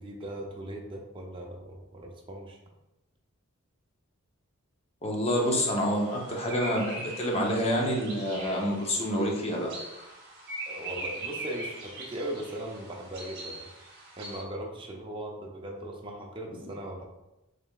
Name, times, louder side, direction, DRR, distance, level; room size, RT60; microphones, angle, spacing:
voice 1, 0.0-2.6 10.7-13.7 14.2-17.1, right 1 dB, 25° right, 0 dB, 0.5 m, -39 dB
voice 2, 5.0-9.7, equal, 30° left, -1 dB, 0.8 m, -27 dB
sound 1, 5.3-14.4, right 2 dB, 50° right, 0.9 m, -42 dB
4.8 x 3.3 x 2.4 m, 0.97 s
head